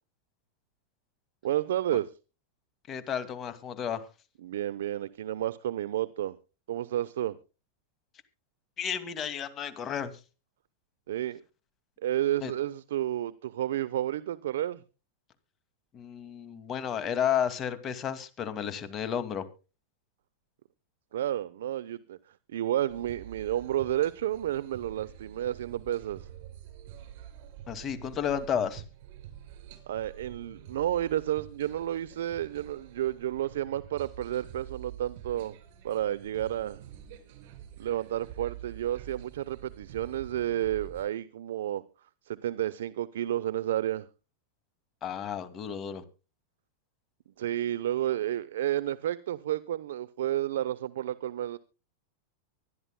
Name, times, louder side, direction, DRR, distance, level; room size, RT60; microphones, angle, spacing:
voice 1, 1.4-2.1 4.4-6.4 6.7-7.4 11.1-11.4 12.0-14.8 21.1-22.2 22.5-26.3 29.9-35.6 35.8-36.8 37.8-41.8 42.2-44.1 47.4-51.6, right 12 dB, 80° right, 0.8 m, -31 dB
voice 2, 2.9-4.1 8.8-10.2 12.4-12.5 15.9-19.5 27.7-28.8 45.0-46.0, left 8 dB, 30° left, 2.3 m, -32 dB
sound 1, 22.9-41.0, right 10 dB, 60° right, 5.2 m, -47 dB
24.5 x 11.0 x 2.2 m
supercardioid pair, 135°, 0 cm